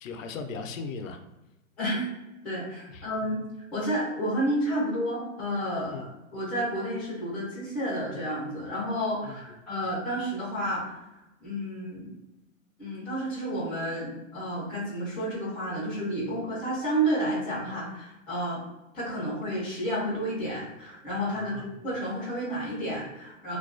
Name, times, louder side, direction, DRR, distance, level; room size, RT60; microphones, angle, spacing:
voice 1, 0.0-1.2 2.9-3.1 5.9-6.1 9.2-9.6 21.3-21.8, left 4 dB, 70° left, 6 dB, 0.5 m, -38 dB
voice 2, 2.4-3.4 3.7-10.9 11.4-12.1 12.8-18.6 18.9-23.6, right 1 dB, 5° left, -8 dB, 0.4 m, -31 dB
2.3 x 2.3 x 2.4 m, 0.99 s
hypercardioid pair, 145°, 41 cm